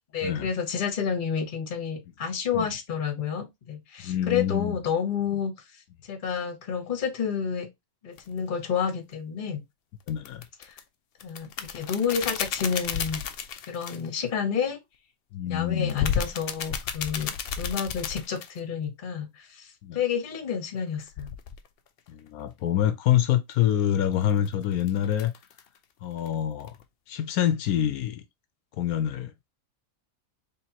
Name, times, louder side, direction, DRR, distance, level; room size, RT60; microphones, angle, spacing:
voice 1, 0.1-5.5 6.0-7.7 8.0-9.6 10.6-10.7 11.2-13.2 13.7-14.8 15.5-21.3, left 7 dB, 40° left, 1.1 m, -30 dB
voice 2, 4.0-4.8 10.1-10.4 15.3-16.0 19.8-20.0 22.1-25.3 26.0-26.8 27.1-28.2 28.8-29.3, left 11 dB, 85° left, 1.1 m, -26 dB
sound 1, 8.2-8.3 10.1-10.8 11.2-14.2 15.9-18.6 21.1-21.7 24.1-25.8 26.2-26.3 26.6-26.8, left 8 dB, 65° left, 0.6 m, -32 dB
4.4 x 3.3 x 2.8 m
omnidirectional pair, 1.5 m